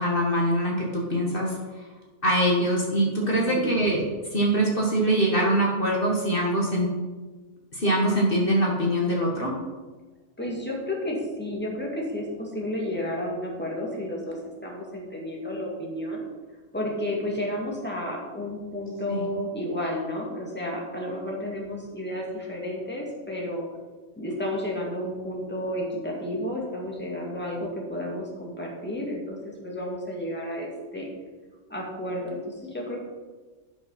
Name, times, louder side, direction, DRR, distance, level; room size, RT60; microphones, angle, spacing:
voice 1, 0.0-1.6 2.2-4.0 4.3-6.9 7.7-9.5 19.1-19.2, right 1 dB, 45° left, -2 dB, 1.7 m, -23 dB
voice 2, 3.2-3.7 10.4-14.4 14.6-16.2 16.7-23.7 24.2-31.1 31.7-33.0, left 1 dB, 10° left, -3 dB, 2.2 m, -32 dB
12.5 x 5.4 x 5.7 m, 1.3 s
omnidirectional pair, 1.3 m